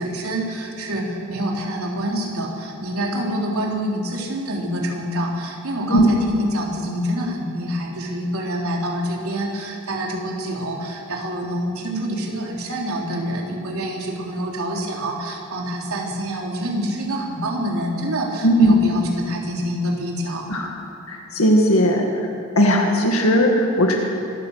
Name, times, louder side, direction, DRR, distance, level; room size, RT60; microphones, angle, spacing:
voice 1, 0.0-20.5, equal, 80° right, -1 dB, 3.8 m, -26 dB
voice 2, 18.4-18.8 20.5-20.7 21.1-22.3 22.6-24.0, equal, 75° left, 1 dB, 2.0 m, -17 dB
25.0 x 15.5 x 6.6 m, 2.9 s
head